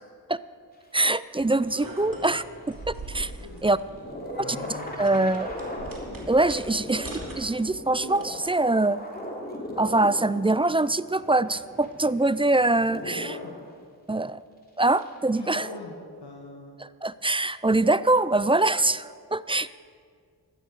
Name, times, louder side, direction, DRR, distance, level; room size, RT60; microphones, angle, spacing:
voice 1, 0.9-2.4 2.9-3.3 3.6-3.8 5.0-5.5 6.3-9.0 9.8-13.3 14.1-14.4 14.8-15.7 17.0-19.7, right 2 dB, 15° right, 16 dB, 0.3 m, -23 dB
sound 1, 1.2-13.7 14.8-16.0, left 1 dB, 20° left, 3.0 m, -39 dB
sound 2, 1.4-8.5, right 2 dB, 55° right, 2.8 m, -42 dB
voice 2, 3.3-3.7 4.3-5.5 13.0-13.6 15.3-16.8, left 3 dB, 85° left, -1 dB, 1.6 m, -42 dB
16.5 x 12.0 x 4.9 m, 2.1 s
cardioid pair, 45°, 41 cm